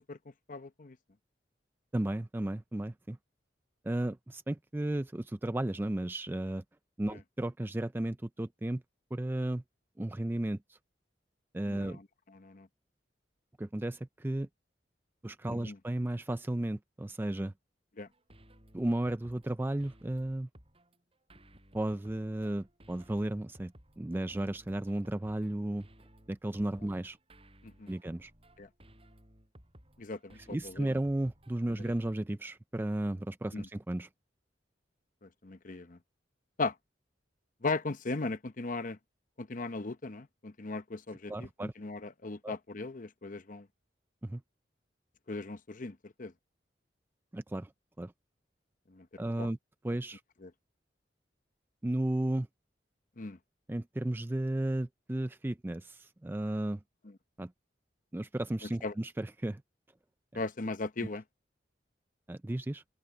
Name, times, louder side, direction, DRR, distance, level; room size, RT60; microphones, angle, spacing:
voice 1, 0.5-1.0 11.7-12.0 12.4-12.7 15.5-15.8 18.0-18.1 27.6-27.9 28.6-28.7 30.0-30.9 31.7-31.8 33.5-33.7 35.2-36.0 36.6-36.7 37.6-39.0 39.4-43.7 45.3-46.3 48.9-49.1 49.4-49.5 50.4-50.5 53.2-53.4 58.8-58.9 60.3-61.2, left 3 dB, 50° left, 0.9 m, -38 dB
voice 2, 1.9-3.2 3.8-6.6 7.0-8.8 9.1-9.6 10.0-10.8 11.5-12.0 13.6-14.5 15.2-17.5 18.7-20.5 21.7-25.9 26.3-27.2 27.9-28.3 30.3-34.1 41.3-41.7 42.4-42.5 44.2-44.4 47.3-47.7 48.0-48.1 49.2-49.6 49.8-50.2 51.8-52.5 53.7-56.8 57.4-57.5 58.1-59.6 60.3-60.4 62.3-62.8, right 1 dB, 10° right, 0.4 m, -34 dB
sound 1, 18.1-32.2, right 1 dB, 35° right, 7.7 m, -59 dB
head